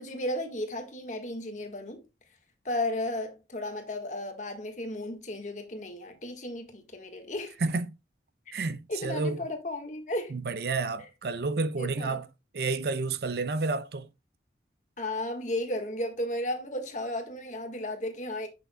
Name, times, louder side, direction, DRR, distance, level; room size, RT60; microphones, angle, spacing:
voice 1, 0.0-2.0 2.6-7.6 8.9-10.3 11.8-12.2 15.0-18.5, left 1 dB, 40° left, 1.5 m, -34 dB
voice 2, 7.6-7.9 8.5-9.4 10.3-12.3 12.5-14.1, right 3 dB, 60° right, 0.5 m, -30 dB
8.1 x 6.3 x 2.2 m
head